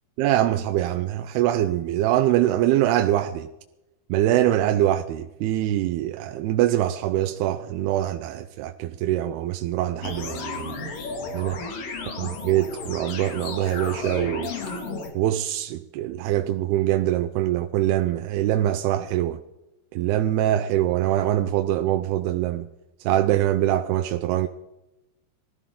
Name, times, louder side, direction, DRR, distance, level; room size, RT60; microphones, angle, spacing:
voice 1, 0.2-3.5 4.1-10.8 11.3-11.6 12.1-14.5 15.1-19.4 19.9-22.7 23.0-24.5, right 13 dB, 80° right, 2.5 m, -23 dB
sound 1, 10.0-15.1, left 4 dB, 60° left, 3.7 m, -33 dB
21.0 x 14.5 x 3.8 m
omnidirectional pair, 4.9 m